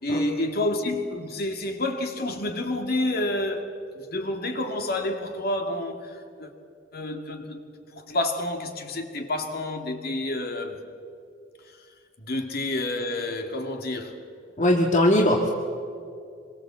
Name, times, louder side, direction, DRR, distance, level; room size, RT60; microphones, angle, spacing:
voice 1, 0.0-6.5 6.9-7.6 7.9-10.8 12.2-14.2, left 1 dB, 55° left, 2.4 m, -29 dB
voice 2, 14.6-15.5, left 1 dB, 40° left, 1.8 m, -20 dB
26.0 x 23.0 x 7.6 m
head